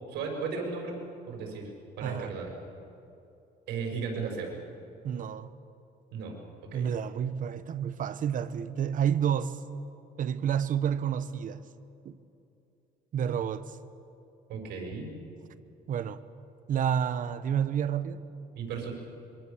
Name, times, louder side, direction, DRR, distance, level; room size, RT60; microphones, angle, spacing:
voice 1, 0.1-0.9 1.3-1.7 2.0-2.5 3.7-4.5 6.1-6.9 14.5-15.1 18.5-18.9, right 5 dB, 80° right, 6.4 m, -35 dB
voice 2, 2.0-2.3 5.0-5.5 6.7-9.6 10.2-11.6 12.0-12.2 13.1-13.8 15.9-16.2 16.7-18.2, right 8 dB, 50° right, 1.1 m, -29 dB
26.5 x 24.0 x 7.1 m
cardioid pair, 110°, 17 cm